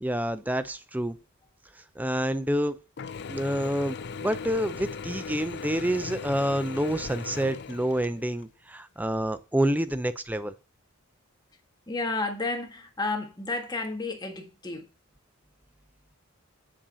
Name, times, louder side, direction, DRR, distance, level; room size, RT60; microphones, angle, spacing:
voice 1, 0.0-1.1 2.0-2.8 3.3-10.5, equal, 5° right, 0.5 m, -28 dB
Mechanisms / Drill, 3.0-8.5, left 5 dB, 50° left, 0.4 m, -38 dB
voice 2, 11.9-14.8, left 3 dB, 20° left, 1.5 m, -31 dB
7.6 x 7.1 x 4.2 m
head